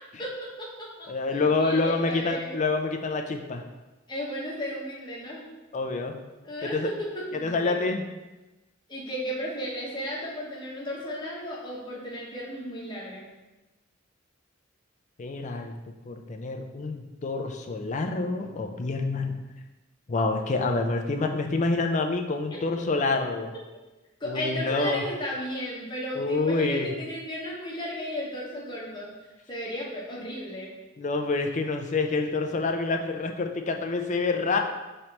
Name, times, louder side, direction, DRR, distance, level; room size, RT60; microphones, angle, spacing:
voice 1, 0.2-2.6 4.1-5.4 6.4-7.8 8.9-13.3 24.2-29.1 29.5-30.7, equal, 20° left, -5 dB, 1.1 m, -34 dB
voice 2, 1.1-3.6 5.7-6.2 6.6-6.9 7.3-8.0 15.2-15.7 16.1-19.3 20.1-23.5 24.2-25.0 26.1-26.9 31.0-34.6, left 3 dB, 40° left, 4 dB, 0.4 m, -27 dB
5.5 x 3.2 x 2.9 m, 1.1 s
head